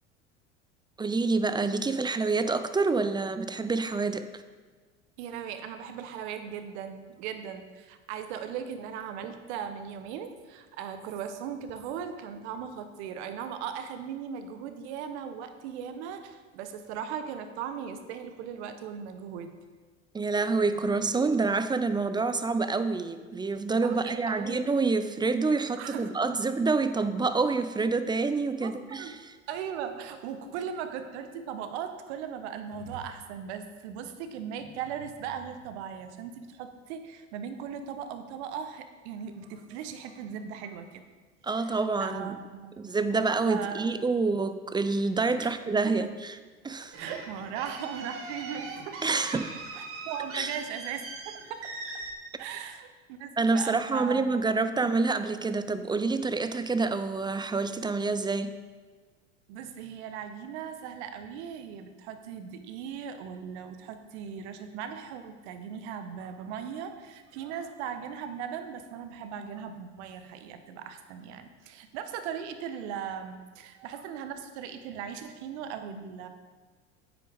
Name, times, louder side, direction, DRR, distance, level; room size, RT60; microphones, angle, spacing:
voice 1, 1.0-4.4 20.1-29.3 41.4-42.4 42.8-46.4 46.6-47.0 49.0-49.4 50.3-50.6 53.4-58.6, right 3 dB, 10° right, 10 dB, 0.4 m, -27 dB
voice 2, 5.2-19.5 23.8-24.6 25.8-26.1 28.6-29.2 29.5-41.0 41.6-41.7 42.0-42.7 43.4-43.9 45.4-45.6 47.0-49.4 49.7-51.7 52.4-54.4 59.5-76.3, right 8 dB, 65° right, 8 dB, 1.0 m, -38 dB
sound 1, 46.9-52.1, right 3 dB, 40° right, 1.8 m, -41 dB
9.3 x 9.0 x 3.5 m, 1.4 s
hypercardioid pair, 80°, 36 cm